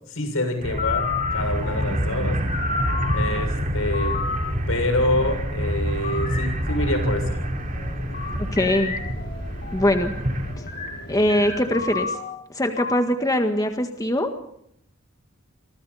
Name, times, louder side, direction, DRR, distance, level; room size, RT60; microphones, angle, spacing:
voice 1, 0.1-2.4 3.1-4.2 4.7-7.4, left 1 dB, 80° left, 6 dB, 7.0 m, -26 dB
sound 1, 0.6-10.5, equal, 40° right, 4.4 m, -27 dB
sound 2, 0.7-3.3 3.9-4.4 4.8-5.4 6.0-7.3 7.7-13.0, left 5 dB, 40° left, 6.4 m, -31 dB
Waves surf, 1.3-12.0, equal, 55° left, 6.1 m, -42 dB
voice 2, 8.5-8.9 9.7-10.1 11.1-12.2 12.5-14.3, left 1 dB, 15° left, 5 dB, 1.7 m, -22 dB
29.0 x 24.0 x 4.3 m, 0.72 s
head